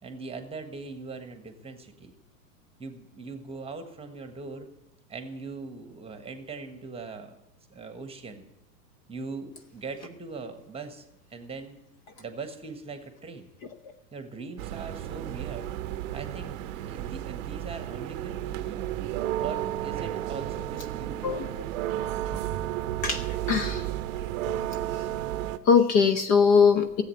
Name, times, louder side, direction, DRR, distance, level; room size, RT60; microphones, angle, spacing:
voice 1, 0.0-2.1 2.8-4.7 5.1-7.4 7.7-8.4 9.1-11.0 11.3-11.8 12.2-13.5 14.1-15.7 16.1-18.8 19.4-21.2, right 4 dB, 10° right, 7 dB, 1.4 m, -40 dB
sound 1, 14.6-25.6, right 13 dB, 55° right, 0.7 m, -32 dB
voice 2, 21.9-22.4 23.0-23.9 25.6-27.0, left 6 dB, 35° left, 8 dB, 0.9 m, -22 dB
14.0 x 8.1 x 7.8 m, 0.86 s
hypercardioid pair, 110°, 48 cm